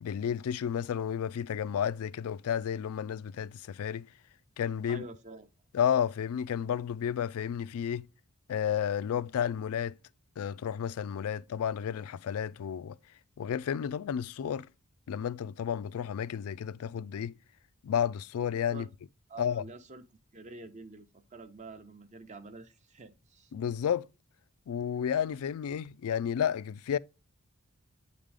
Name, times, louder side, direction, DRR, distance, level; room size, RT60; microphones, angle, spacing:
voice 1, 0.0-4.1 4.6-5.0 5.7-8.1 8.5-10.0 10.4-13.0 13.4-14.7 15.1-17.4 17.8-18.9 19.4-19.6 23.5-24.1 24.7-27.0, left 8 dB, 80° left, 0.3 m, -32 dB
voice 2, 4.8-5.5 18.7-18.9 19.3-20.1 20.3-23.5, right 3 dB, 30° right, 0.7 m, -47 dB
8.0 x 3.7 x 3.3 m
head